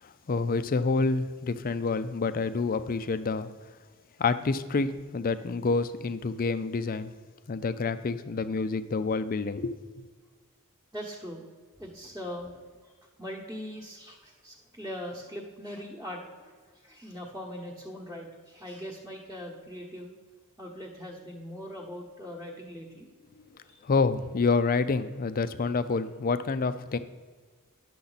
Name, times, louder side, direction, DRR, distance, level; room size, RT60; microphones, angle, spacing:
voice 1, 0.0-3.5 4.2-7.1 7.5-10.1 23.8-27.0, left 4 dB, 40° left, 12 dB, 0.4 m, -28 dB
voice 2, 10.9-11.4 11.8-20.1 20.6-23.1 23.6-23.8, equal, 10° right, -4 dB, 1.1 m, -41 dB
10.0 x 6.9 x 4.0 m, 1.5 s
head